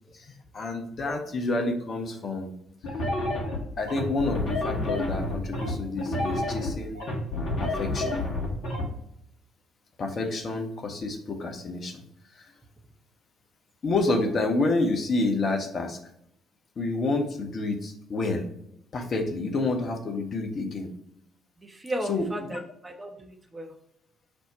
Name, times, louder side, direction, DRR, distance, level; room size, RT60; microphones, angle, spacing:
voice 1, 0.1-2.5 3.8-7.0 7.6-8.2 10.0-12.0 12.4-12.5 13.8-16.0 16.8-18.5 18.9-20.9 22.0-22.6, left 2 dB, 45° left, 3 dB, 0.7 m, -29 dB
sound 1, 2.8-8.8, left 2 dB, 60° left, 1.0 m, -29 dB
voice 2, 21.6-23.7, right 1 dB, 20° right, 2 dB, 0.5 m, -35 dB
5.1 x 2.1 x 4.2 m, 0.75 s
figure-of-eight pair, 45°, 0 cm